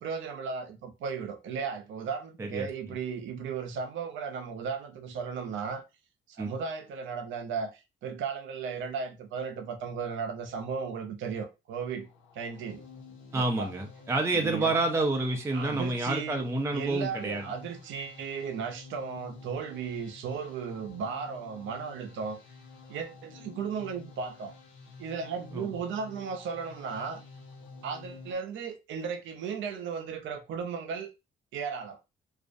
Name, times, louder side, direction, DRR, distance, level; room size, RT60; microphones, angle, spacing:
voice 1, 0.0-5.8 6.3-12.1 12.3-12.8 13.3-13.7 14.3-14.7 15.5-22.4 22.9-24.5 25.0-27.2 27.8-31.1 31.5-32.0, right 6 dB, 75° right, 0.5 m, -35 dB
sound 1, 11.8-28.3, left 4 dB, 90° left, 0.6 m, -50 dB
voice 2, 13.3-17.4 25.5-25.8, right 2 dB, 15° right, 0.4 m, -29 dB
2.4 x 2.0 x 2.5 m
cardioid pair, 90°, 20 cm